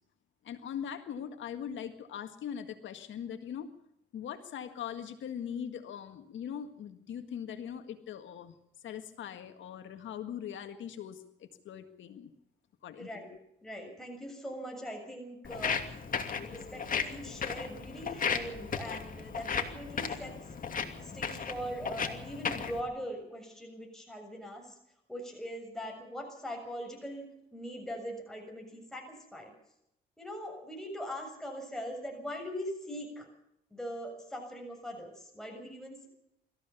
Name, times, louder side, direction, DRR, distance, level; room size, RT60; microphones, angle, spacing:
voice 1, 0.4-3.7 4.1-8.6 8.8-12.3 12.8-13.3, left 8 dB, 70° left, 7 dB, 1.9 m, -41 dB
voice 2, 13.0-13.3 13.6-15.8 16.4-20.3 21.0-24.8 25.1-27.3 27.5-29.0 29.3-29.5 30.2-33.3 33.7-36.1, equal, ahead, 1 dB, 7.0 m, -41 dB
Walk footsteps, 15.4-22.8, left 6 dB, 45° left, 2.8 m, -35 dB
25.0 x 14.5 x 7.0 m, 0.78 s
cardioid pair, 90°, 20 cm